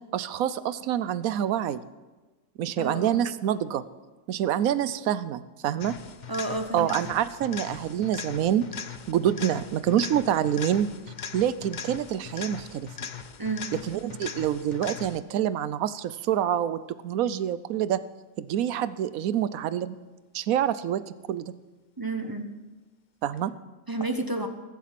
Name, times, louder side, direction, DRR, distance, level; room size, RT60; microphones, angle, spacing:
voice 1, 0.1-1.8 2.6-3.8 4.3-5.9 6.7-8.7 9.1-10.9 11.3-12.9 13.8-18.0 18.4-20.0 20.3-21.0 21.3-21.5 23.2-23.5, right 10 dB, 85° right, 15 dB, 1.1 m, -26 dB
voice 2, 2.8-3.3 6.3-7.0 13.4-13.7 22.0-22.5 23.9-24.5, right 2 dB, 20° right, 6 dB, 0.8 m, -31 dB
sound 1, 5.8-15.4 23.4-23.5, left 7 dB, 45° left, 0.7 m, -40 dB
22.5 x 7.4 x 5.9 m, 1.2 s
omnidirectional pair, 1.4 m